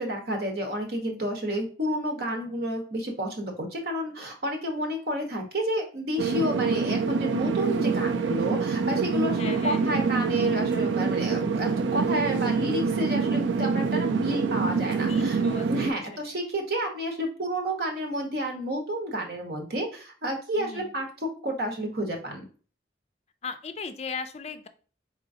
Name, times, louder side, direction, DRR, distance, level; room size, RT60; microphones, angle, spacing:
voice 1, 0.0-15.4 15.7-21.1 21.4-22.4, equal, 60° right, 2 dB, 1.1 m, -30 dB
sound 1, 6.2-15.9, right 5 dB, 90° right, 0.4 m, -26 dB
voice 2, 9.4-10.0 15.0-16.0 20.6-20.9 23.4-24.7, left 5 dB, 35° left, 9 dB, 0.4 m, -37 dB
4.2 x 3.7 x 2.7 m, 0.38 s
head